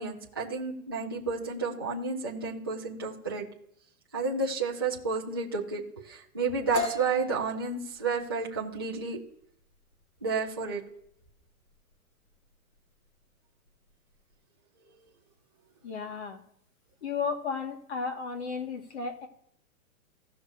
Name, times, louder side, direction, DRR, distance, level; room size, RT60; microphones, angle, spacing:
voice 1, 0.0-3.5 4.1-9.2 10.2-10.8, right 4 dB, 15° right, -5 dB, 0.4 m, -31 dB
sound 1, 6.7-14.4, left 1 dB, 70° left, 2.9 m, -40 dB
voice 2, 15.8-16.4 17.0-19.3, left 5 dB, 50° left, 3 dB, 1.9 m, -34 dB
16.5 x 6.5 x 2.7 m, 0.72 s
hypercardioid pair, 175°, 44 cm